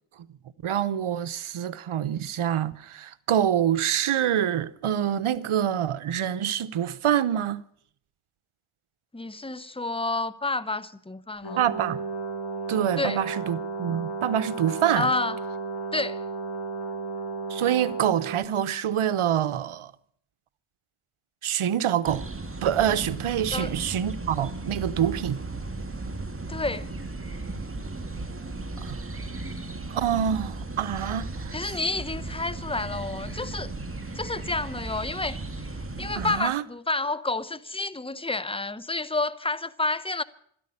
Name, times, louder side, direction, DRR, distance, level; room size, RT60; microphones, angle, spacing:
voice 1, 0.6-7.6 11.6-12.0 12.7-15.1 17.5-19.9 21.4-22.2 22.6-25.4 28.8-29.0 29.9-31.5 36.2-36.6, right 10 dB, 75° right, 0.9 m, -26 dB
voice 2, 9.1-11.7 13.0-13.2 15.0-15.4 15.9-16.2 23.5-23.8 26.5-26.9 31.5-33.7 34.1-35.7 36.0-40.2, left 3 dB, 10° left, 0.9 m, -29 dB
Brass instrument, 11.4-18.4, right 3 dB, 50° left, 4.9 m, -33 dB
sound 1, 22.0-36.4, right 2 dB, 25° right, 2.0 m, -36 dB
13.0 x 11.0 x 9.9 m
cardioid pair, 45°, 50 cm